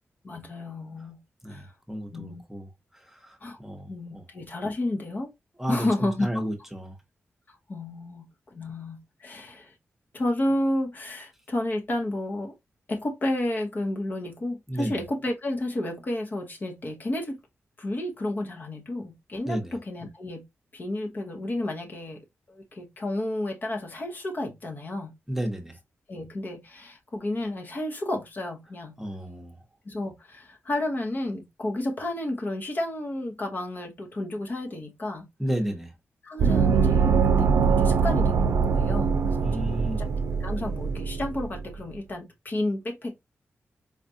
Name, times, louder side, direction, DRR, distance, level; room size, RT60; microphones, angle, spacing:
voice 1, 0.2-1.2 1.5-1.7 2.1-2.4 3.4-3.6 3.9-5.3 5.7-6.5 7.5-9.7 10.1-12.5 12.9-17.4 17.8-20.5 20.7-22.2 22.5-25.1 26.1-29.0 29.8-35.3 36.2-39.6 40.0-40.1 40.4-43.2, left 1 dB, 40° left, 0.8 m, -31 dB
voice 2, 1.4-2.7 2.9-4.2 5.6-7.0 14.7-15.0 19.4-19.7 25.3-25.8 29.0-29.6 35.4-35.9 39.4-40.0, equal, 5° right, 0.9 m, -32 dB
Gong, 36.4-41.6, right 5 dB, 85° right, 0.5 m, -23 dB
4.3 x 2.4 x 2.6 m
wide cardioid pair, 120°, 5 cm